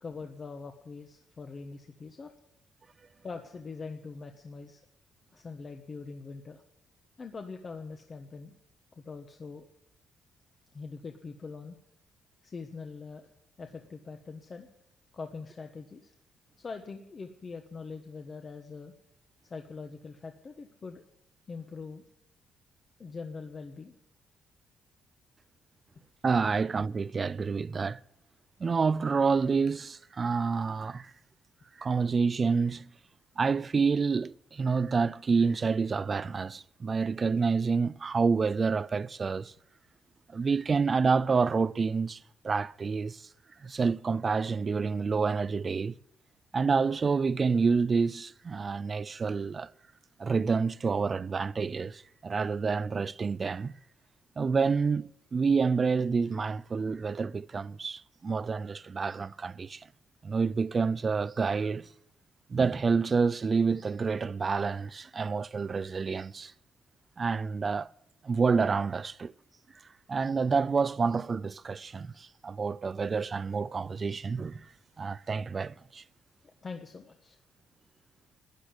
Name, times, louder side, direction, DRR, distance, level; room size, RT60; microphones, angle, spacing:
voice 1, 0.0-2.3 3.2-4.8 5.3-6.6 7.2-8.5 8.9-9.6 10.7-11.7 12.4-13.3 13.6-14.7 15.1-16.1 16.6-18.9 19.4-21.0 21.5-22.0 23.0-23.9 76.6-77.4, left 4 dB, 40° left, 1.3 m, -43 dB
voice 2, 26.2-28.0 28.6-31.1 31.8-32.9 33.4-39.5 40.3-42.2 42.4-43.2 43.6-45.9 46.5-49.7 50.2-53.7 54.4-59.9 60.2-61.9 62.5-66.5 67.2-67.9 68.2-69.3 70.1-74.7 75.0-76.0, right 5 dB, 35° right, 0.5 m, -28 dB
13.5 x 9.9 x 8.7 m
cardioid pair, 90°, 0 cm